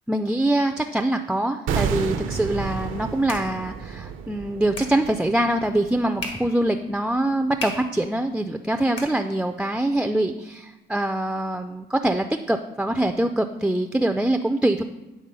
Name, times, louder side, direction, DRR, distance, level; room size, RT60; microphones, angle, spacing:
voice 1, 0.1-14.8, right 1 dB, 5° right, 6 dB, 0.3 m, -24 dB
sound 1, 1.7-6.7 6.9-7.1, right 6 dB, 85° right, 0.6 m, -31 dB
sound 2, 2.8-9.8, left 2 dB, 75° left, 1.6 m, -41 dB
8.7 x 3.7 x 5.4 m, 1.1 s
cardioid pair, 90°, 20 cm